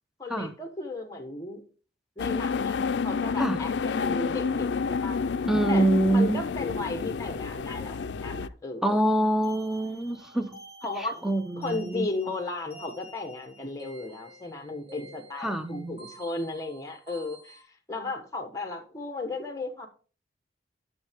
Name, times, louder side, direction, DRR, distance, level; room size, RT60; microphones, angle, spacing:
voice 1, 0.2-1.6 2.2-5.2 5.7-9.0 10.8-11.3 11.6-17.6 17.9-19.9, left 2 dB, 20° left, 1.2 m, -35 dB
sound 1, 2.2-8.5, left 5 dB, 75° left, 0.4 m, -29 dB
voice 2, 5.5-6.4 8.8-10.6 11.2-12.1 15.4-16.0, right 1 dB, ahead, 0.7 m, -25 dB
sound 2, 8.9-17.6, right 1 dB, 35° right, 3.2 m, -50 dB
10.5 x 6.6 x 3.5 m
head